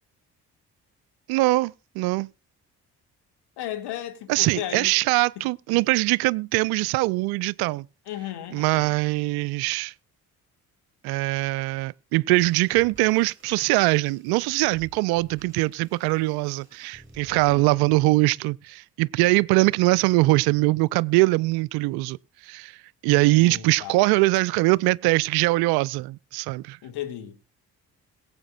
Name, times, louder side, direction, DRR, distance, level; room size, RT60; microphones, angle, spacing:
voice 1, 1.3-2.3 4.3-7.9 8.5-9.9 11.0-22.2 22.4-22.8 23.0-26.8, right 21 dB, 60° right, 0.5 m, -22 dB
voice 2, 3.6-5.0 5.7-5.8 8.1-8.9 17.3-17.8 23.1-24.0 26.8-27.4, left 11 dB, 60° left, 2.2 m, -35 dB
sound 1, 12.3-17.6, right 3 dB, 25° right, 6.8 m, -53 dB
22.0 x 8.2 x 2.4 m
figure-of-eight pair, 40°, 44 cm